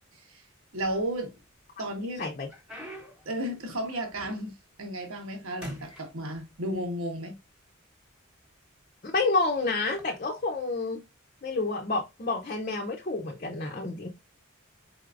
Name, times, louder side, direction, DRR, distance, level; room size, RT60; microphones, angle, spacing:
voice 1, 0.1-0.5 0.7-1.3 1.8-2.2 3.2-7.4, right 1 dB, 85° right, 1.4 m, -33 dB
sound 1, 0.7-1.5 2.0-4.7 5.1-5.4 5.6-6.8 7.7-7.8 8.5-8.7 9.8-10.0, equal, 5° right, 1.1 m, -46 dB
voice 2, 9.1-11.0 11.4-14.1, left 3 dB, 40° left, 0.7 m, -29 dB
4.6 x 4.2 x 2.5 m
head